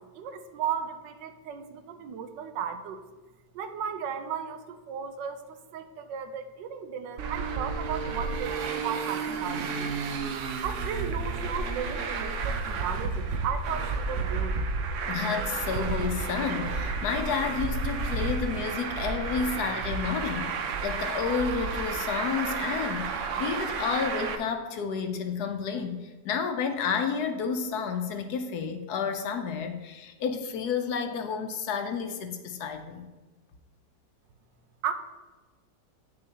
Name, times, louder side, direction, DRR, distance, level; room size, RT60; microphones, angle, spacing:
voice 1, 0.0-3.0 3.5-5.4 5.7-10.0 10.6-14.5 34.8-34.9, right 8 dB, 90° right, 8 dB, 1.3 m, -35 dB
Traffic noise roadway noise, 7.2-24.4, right 4 dB, 75° right, 0.7 m, -31 dB
voice 2, 15.1-23.1 23.4-33.1, left 6 dB, 70° left, 6 dB, 1.1 m, -31 dB
9.1 x 6.5 x 2.8 m, 1.2 s
omnidirectional pair, 1.9 m